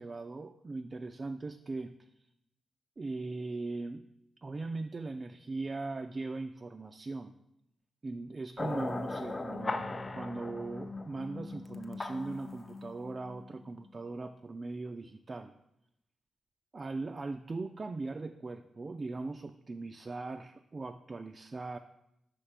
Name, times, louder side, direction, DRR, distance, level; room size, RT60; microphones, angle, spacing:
voice 1, 0.0-2.1 3.0-4.0 4.4-7.3 8.0-15.5 16.7-21.8, right 3 dB, 40° right, 7 dB, 0.3 m, -39 dB
sound 1, 8.6-13.9, left 3 dB, 30° left, 0.6 m, -39 dB
5.8 x 3.4 x 5.7 m, 0.83 s
cardioid pair, 65°, 0 cm